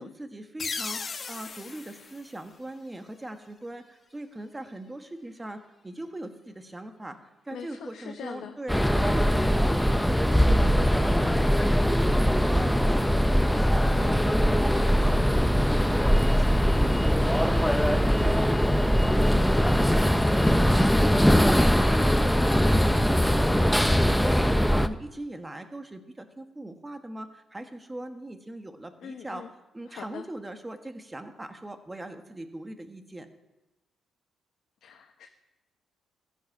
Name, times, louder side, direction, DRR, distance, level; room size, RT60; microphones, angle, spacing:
voice 1, 0.0-7.2 7.4-18.0 18.4-29.4 29.7-33.3, right 1 dB, 15° right, 7 dB, 1.3 m, -40 dB
sound 1, 0.6-3.2, left 4 dB, 40° left, 1.1 m, -37 dB
voice 2, 7.5-8.5 14.0-14.4 29.0-29.5 29.9-30.2 34.8-35.3, left 8 dB, 70° left, 4 dB, 0.9 m, -42 dB
sound 2, 8.7-24.9, equal, 5° left, 0.6 m, -21 dB
15.0 x 7.4 x 5.4 m, 1.0 s
cardioid pair, 90°, 0 cm